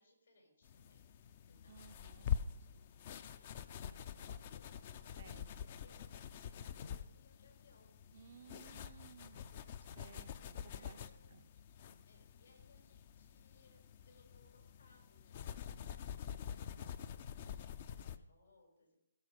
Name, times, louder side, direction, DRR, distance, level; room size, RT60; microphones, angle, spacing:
voice 1, 0.0-3.5 3.8-5.4 5.8-7.9 10.0-10.2 10.6-11.4 12.1-19.0, left 2 dB, 75° left, 1 dB, 5.0 m, -69 dB
leg twitching, 0.6-18.2, left 8 dB, 35° left, 0.5 m, -46 dB
voice 2, 1.7-2.3 5.2-5.5 8.1-11.5, right 7 dB, 50° right, 12 dB, 0.5 m, -59 dB
17.0 x 5.9 x 5.1 m, 0.83 s
hypercardioid pair, 160°, 0 cm